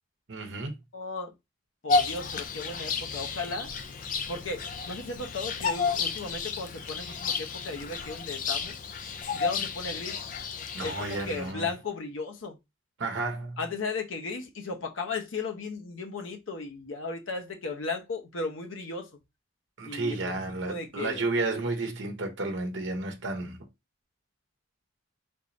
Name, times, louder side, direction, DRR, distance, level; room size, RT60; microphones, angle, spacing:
voice 1, 0.3-0.7 10.7-11.7 13.0-13.6 19.8-23.6, right 2 dB, 70° right, 0.8 m, -32 dB
voice 2, 0.9-1.3 1.8-3.7 4.3-8.8 9.3-10.2 10.8-12.6 13.6-19.1 19.8-20.3 20.6-21.3, left 3 dB, 85° left, 0.7 m, -36 dB
Bird vocalization bird call bird song, 1.9-11.5, left 5 dB, 40° left, 0.4 m, -32 dB
3.6 x 2.9 x 2.6 m
head